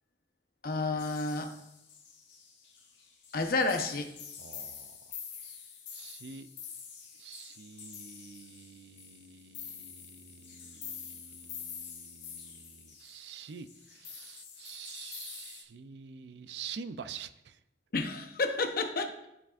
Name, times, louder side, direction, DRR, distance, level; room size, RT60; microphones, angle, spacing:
voice 1, 0.6-1.5 3.3-4.1 17.9-19.1, left 3 dB, 55° left, 6 dB, 0.8 m, -30 dB
sound 1, 1.0-15.6, left 7 dB, 85° left, 1.4 m, -47 dB
voice 2, 4.4-5.2 5.9-6.5 7.2-17.6, right 6 dB, 70° right, 12 dB, 0.4 m, -47 dB
13.5 x 4.8 x 2.5 m, 0.87 s
head